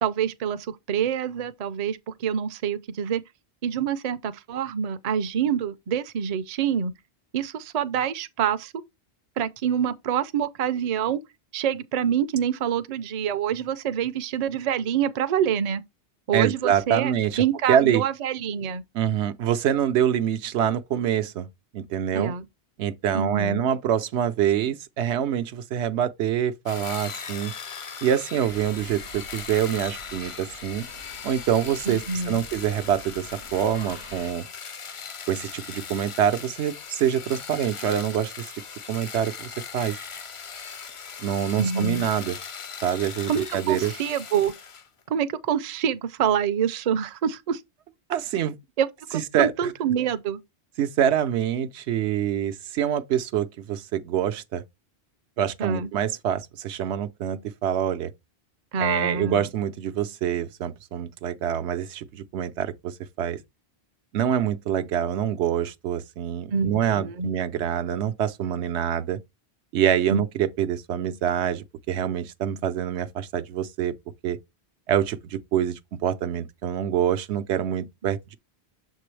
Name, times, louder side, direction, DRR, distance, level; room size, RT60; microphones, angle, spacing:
voice 1, 0.0-3.2 3.6-6.9 7.3-8.7 9.4-11.2 11.5-15.8 16.3-17.1 17.4-18.8 22.1-22.5 23.1-23.6 31.9-32.4 41.6-42.1 43.3-44.5 45.1-47.6 48.8-50.4 55.6-55.9 58.7-59.5 66.5-67.3 70.1-70.2, right 8 dB, 50° right, 0.5 m, -26 dB
voice 2, 16.3-17.4 17.7-18.0 18.9-21.5 21.7-22.3 22.8-27.5 28.0-30.8 31.2-34.4 35.3-38.6 38.9-40.0 41.2-42.4 42.8-43.9 48.1-48.6 49.1-49.7 50.8-54.6 55.4-58.1 58.8-63.4 64.1-69.2 69.7-73.9 74.2-74.4 74.9-78.4, right 9 dB, 80° right, 0.9 m, -25 dB
sound 1, 26.7-44.9, left 6 dB, 45° left, 0.4 m, -39 dB
sound 2, 28.4-34.3, left 1 dB, 85° left, 2.2 m, -46 dB
6.7 x 4.6 x 3.2 m
omnidirectional pair, 1.1 m